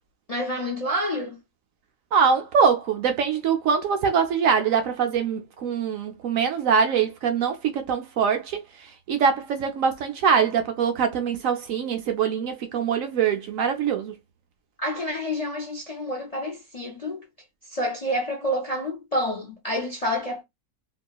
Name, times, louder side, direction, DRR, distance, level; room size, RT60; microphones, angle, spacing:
voice 1, 0.3-1.4 14.8-17.2 17.7-20.4, equal, 40° left, 0.5 m, -28 dB
voice 2, 2.1-8.6 9.1-14.1, right 6 dB, 70° right, 0.9 m, -23 dB
2.9 x 2.7 x 2.3 m
omnidirectional pair, 1.6 m